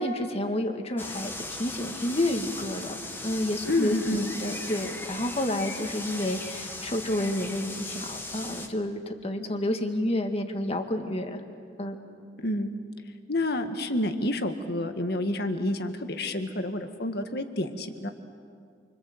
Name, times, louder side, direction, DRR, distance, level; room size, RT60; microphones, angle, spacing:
voice 1, 0.0-4.0 4.3-11.4 11.8-12.0, left 1 dB, 35° left, 5 dB, 2.0 m, -30 dB
sound 1, 1.0-8.7, left 2 dB, 10° left, 1.6 m, -38 dB
voice 2, 3.7-4.3 12.4-12.7 13.3-18.1, left 1 dB, 60° left, 7 dB, 1.7 m, -29 dB
28.0 x 25.0 x 7.9 m, 2.3 s
head